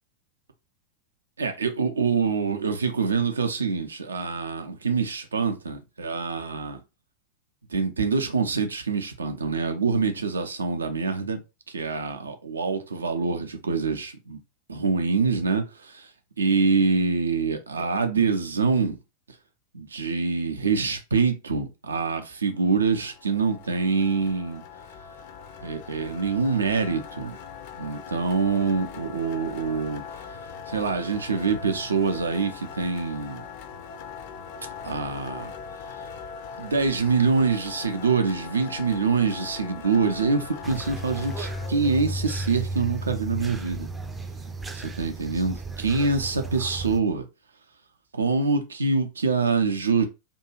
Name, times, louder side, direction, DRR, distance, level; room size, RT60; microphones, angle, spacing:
voice 1, 1.4-6.8 7.7-11.4 11.7-14.4 14.7-16.1 16.4-19.0 19.7-24.6 25.6-27.4 27.8-30.0 30.7-33.4 34.8-35.5 36.6-43.9 45.0-47.2 48.1-50.0, right 4 dB, 75° right, 0.5 m, -25 dB
sound 1, 22.6-41.7, left 6 dB, 45° left, 0.4 m, -41 dB
sound 2, 40.6-47.0, right 2 dB, 10° right, 0.4 m, -34 dB
2.6 x 2.3 x 2.9 m
figure-of-eight pair, 90°, 0 cm